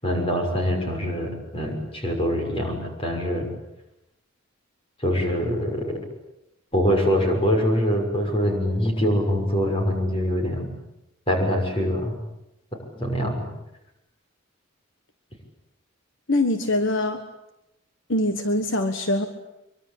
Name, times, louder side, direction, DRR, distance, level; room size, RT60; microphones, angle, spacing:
voice 1, 0.0-3.5 5.0-6.0 6.7-10.7 11.3-12.2 12.9-13.5, equal, 25° left, 2 dB, 6.4 m, -24 dB
voice 2, 16.3-17.2 18.1-19.3, left 1 dB, 65° left, 8 dB, 1.5 m, -23 dB
24.0 x 24.0 x 8.7 m, 0.89 s
head